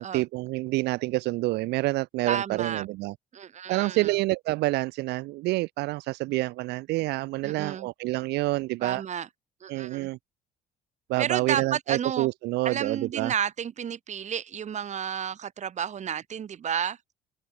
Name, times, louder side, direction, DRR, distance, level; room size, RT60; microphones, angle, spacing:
voice 1, 0.0-3.1 3.7-9.0 9.7-10.2 11.1-13.3, right 20 dB, 80° right, 0.5 m, -28 dB
voice 2, 2.3-2.9 3.3-4.1 7.4-7.9 8.8-9.3 9.6-10.1 11.2-12.3 12.6-17.0, right 8 dB, 45° right, 2.0 m, -31 dB
cardioid pair, 110°, 17 cm